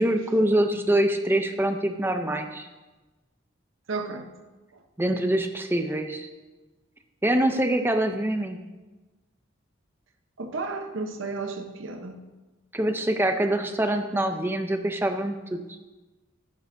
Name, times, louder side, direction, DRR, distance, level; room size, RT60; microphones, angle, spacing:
voice 1, 0.0-2.7 5.0-6.3 7.2-8.6 12.7-15.6, right 1 dB, 10° right, 6 dB, 0.6 m, -24 dB
voice 2, 3.9-4.3 4.7-4.8 10.4-12.2, right 3 dB, 65° right, 6 dB, 0.9 m, -33 dB
13.5 x 9.5 x 2.7 m, 1.2 s
head